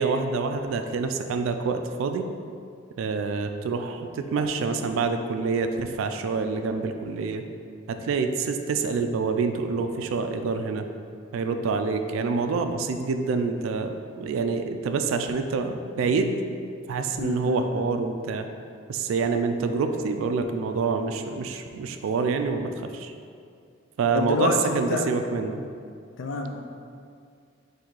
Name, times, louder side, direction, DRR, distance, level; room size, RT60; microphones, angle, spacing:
voice 1, 0.0-2.3 3.0-7.4 7.9-10.8 11.3-16.4 16.9-18.5 18.9-23.1 24.0-25.6, right 4 dB, 80° right, 7 dB, 0.3 m, -27 dB
voice 2, 17.2-18.0 24.1-25.1 26.2-26.8, left 3 dB, 65° left, 3 dB, 0.4 m, -28 dB
3.9 x 2.7 x 4.5 m, 2.3 s
head